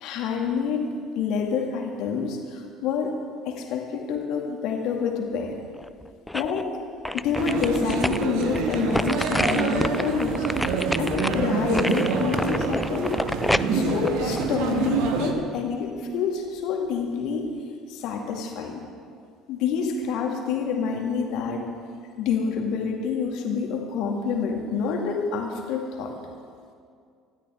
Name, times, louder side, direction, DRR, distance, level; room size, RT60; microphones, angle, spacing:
voice 1, 0.0-3.2 3.4-5.5 6.3-6.7 7.1-13.2 13.7-17.5 17.9-18.8 19.5-21.7 22.2-26.1, left 6 dB, 55° left, 2 dB, 2.3 m, -27 dB
sound 1, 5.8-6.6 7.0-15.1 15.5-15.6, left 1 dB, 5° left, 0.4 m, -29 dB
sound 2, 7.3-15.3, right 5 dB, 60° right, 1.4 m, -26 dB
25.5 x 13.0 x 3.7 m, 2.3 s
figure-of-eight pair, 55°, 0 cm